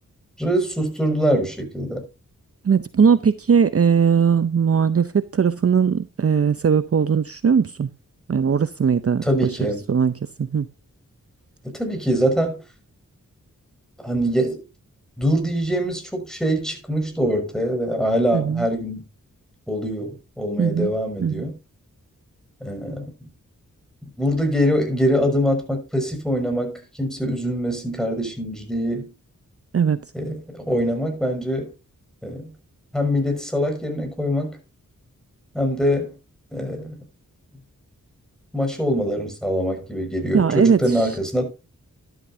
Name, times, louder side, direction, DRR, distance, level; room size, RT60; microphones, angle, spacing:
voice 1, 0.4-2.1 9.2-9.8 11.6-12.6 14.0-14.6 15.2-19.0 19.7-21.6 22.6-23.1 24.2-29.1 30.1-31.7 32.2-32.5 32.9-34.6 35.5-36.1 36.5-37.0 38.5-41.4, equal, ahead, 5.9 m, -23 dB
voice 2, 2.6-7.9 8.3-9.6 9.9-10.1 10.4-10.7 18.3-18.7 20.6-20.9 21.2-21.4 29.7-30.0 40.3-41.2, right 6 dB, 45° right, 0.7 m, -19 dB
12.5 x 12.0 x 2.8 m
wide cardioid pair, 70°, 32 cm